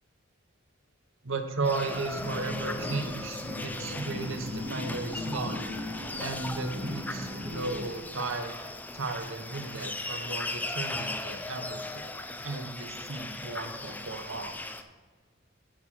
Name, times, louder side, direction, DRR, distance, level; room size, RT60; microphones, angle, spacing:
voice 1, 1.2-5.6 6.2-12.0 12.4-14.6, right 3 dB, 75° right, 7 dB, 0.9 m, -35 dB
sound 1, 1.6-14.8, left 2 dB, 10° left, 0.4 m, -38 dB
sound 2, 1.7-7.8, left 1 dB, 25° right, 2.0 m, -38 dB
10.0 x 4.8 x 5.8 m, 1.4 s
head